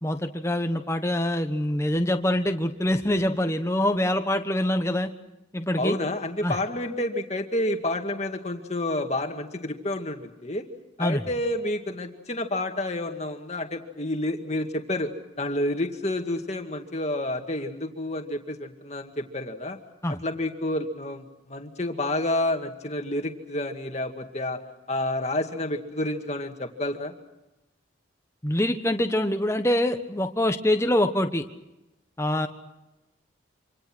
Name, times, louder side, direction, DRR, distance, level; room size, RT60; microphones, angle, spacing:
voice 1, 0.0-5.1 5.5-6.0 6.4-6.5 11.0-11.2 20.0-20.2 28.4-31.4 32.2-32.5, left 1 dB, 15° left, 7 dB, 1.2 m, -25 dB
voice 2, 5.8-10.7 11.0-15.1 15.4-19.8 20.1-24.6 24.9-27.1, left 1 dB, 35° left, 5 dB, 2.1 m, -29 dB
26.5 x 26.5 x 6.2 m, 0.95 s
head